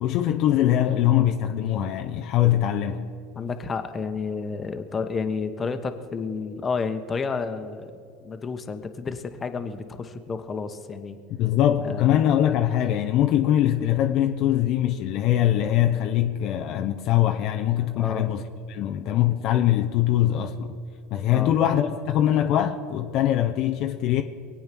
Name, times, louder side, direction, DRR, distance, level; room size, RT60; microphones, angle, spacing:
voice 1, 0.0-3.1 11.4-18.4 18.7-20.8 21.1-24.2, left 12 dB, 55° left, 0.8 m, -22 dB
voice 2, 3.4-7.9 8.2-11.2 11.8-12.3 18.0-18.3 21.3-21.5, left 5 dB, 30° left, 1.2 m, -31 dB
22.5 x 8.7 x 6.1 m
hypercardioid pair, 85°, 0 cm